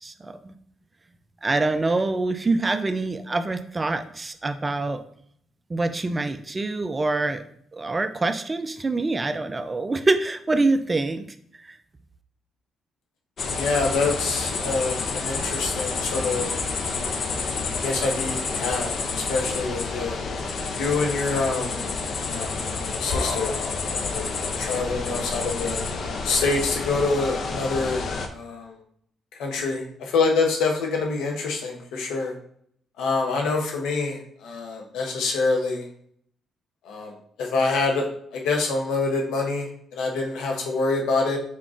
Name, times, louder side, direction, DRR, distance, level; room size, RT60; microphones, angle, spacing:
voice 1, 0.0-0.6 1.4-5.0 5.7-7.4 7.7-11.2, right 3 dB, 25° right, 10 dB, 0.4 m, -25 dB
sound 1, 13.4-28.3, left 4 dB, 55° left, 0.5 m, -29 dB
voice 2, 13.6-17.1 17.8-20.2 20.8-21.8 22.2-22.6 22.9-25.8 26.2-28.0 28.3-28.8 29.4-32.3 33.0-35.9 36.8-41.4, left 3 dB, 85° left, 1 dB, 0.8 m, -26 dB
4.5 x 3.7 x 2.5 m, 0.65 s
cardioid pair, 90°, 0 cm